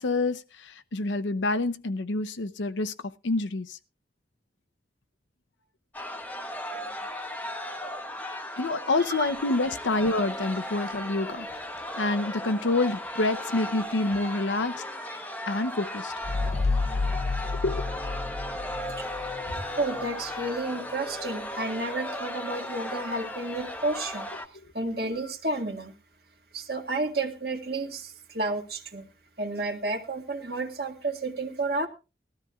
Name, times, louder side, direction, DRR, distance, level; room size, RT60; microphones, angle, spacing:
voice 1, 0.0-2.9 3.2-3.8 8.6-11.5 12.0-14.8 15.5-16.1 17.5-18.0, left 2 dB, 90° left, 0.7 m, -27 dB
sound 1, 5.9-24.5, left 1 dB, 10° left, 0.9 m, -36 dB
sound 2, 16.2-19.6, left 3 dB, 40° left, 0.6 m, -30 dB
voice 2, 19.5-24.3 24.7-25.9 26.5-29.1 29.4-31.9, right 2 dB, 55° right, 1.8 m, -31 dB
19.5 x 13.0 x 2.4 m
head